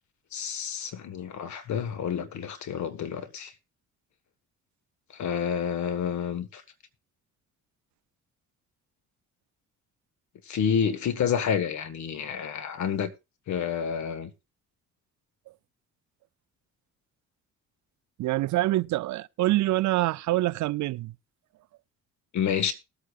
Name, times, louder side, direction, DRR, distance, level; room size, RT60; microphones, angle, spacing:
voice 1, 0.3-3.5 5.1-6.6 10.5-13.1 13.5-14.3 22.3-22.7, left 7 dB, 70° left, 1.6 m, -29 dB
voice 2, 18.2-21.2, right 17 dB, 70° right, 0.5 m, -25 dB
19.5 x 8.5 x 2.4 m
cardioid pair, 90°, 30 cm